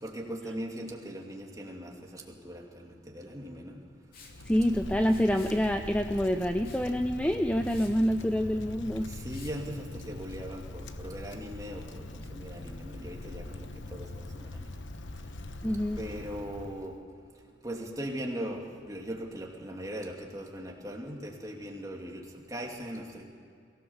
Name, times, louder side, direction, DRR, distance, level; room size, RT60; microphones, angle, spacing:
voice 1, 0.0-3.8 9.1-12.0 12.3-14.1 14.4-14.6 16.0-16.9 17.6-22.2 22.5-23.2, equal, 20° right, 0 dB, 2.5 m, -39 dB
Liquid, 4.1-4.4 5.0-5.6 6.6-6.9 7.3-7.4 7.6-7.9 9.3-9.5, left 4 dB, 50° left, 3.1 m, -52 dB
Wind, 4.2-17.0, left 2 dB, 90° left, 1.1 m, -42 dB
voice 2, 4.5-9.1 15.6-16.0, equal, 5° left, 6 dB, 0.5 m, -27 dB
22.5 x 17.0 x 7.2 m, 2.3 s
head